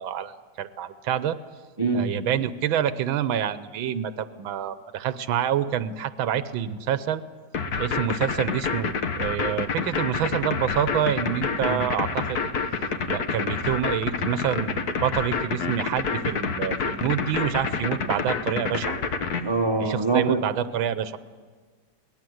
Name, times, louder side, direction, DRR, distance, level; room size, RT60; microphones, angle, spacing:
voice 1, 0.0-1.4 1.9-7.2 7.8-12.4 13.1-19.0 19.8-21.2, right 9 dB, 90° right, 14 dB, 1.6 m, -27 dB
voice 2, 1.8-2.1 11.6-11.8 19.4-20.4, right 3 dB, 20° right, 5 dB, 0.7 m, -24 dB
sound 1, 7.5-19.4, left 5 dB, 55° left, 1.6 m, -27 dB
22.5 x 18.5 x 7.9 m, 1.5 s
omnidirectional pair, 2.1 m